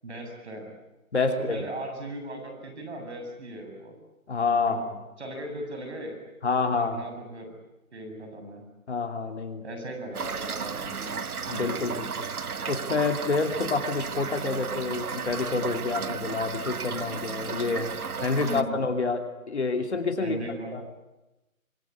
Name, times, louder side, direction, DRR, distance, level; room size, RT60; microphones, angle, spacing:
voice 1, 0.0-0.7 1.3-3.9 4.7-4.8 5.2-6.2 6.7-7.5 7.9-8.6 9.6-11.2 11.5-11.9 18.4-18.8 20.2-20.8, right 1 dB, 50° right, 4 dB, 7.8 m, -38 dB
voice 2, 1.1-1.7 4.3-5.0 6.4-7.0 8.9-9.6 11.5-12.1 12.7-17.9 18.2-20.8, left 4 dB, 50° left, 5 dB, 3.0 m, -28 dB
Toilet flush / Fill (with liquid), 10.1-18.6, right 6 dB, 80° right, 1.2 m, -34 dB
25.5 x 22.0 x 9.8 m, 1.0 s
figure-of-eight pair, 165°, 43 cm